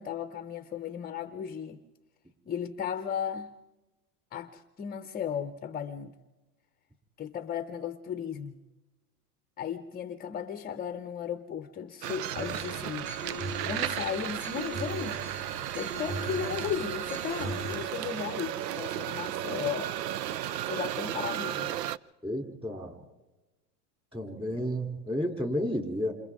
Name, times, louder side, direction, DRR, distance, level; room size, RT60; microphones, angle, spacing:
voice 1, 0.0-1.8 2.4-3.5 4.3-6.1 7.2-8.6 9.6-13.1 13.6-15.2 15.8-19.9 20.7-21.7, left 8 dB, 20° left, 10 dB, 0.8 m, -35 dB
sound 1, 12.0-22.0, right 12 dB, 80° right, 0.7 m, -34 dB
sound 2, 12.4-17.7, right 2 dB, 35° right, 7.5 m, -39 dB
voice 2, 22.2-23.0 24.1-26.1, equal, 10° right, 4 dB, 3.1 m, -31 dB
28.0 x 27.0 x 3.6 m, 1.1 s
supercardioid pair, 125°, 47 cm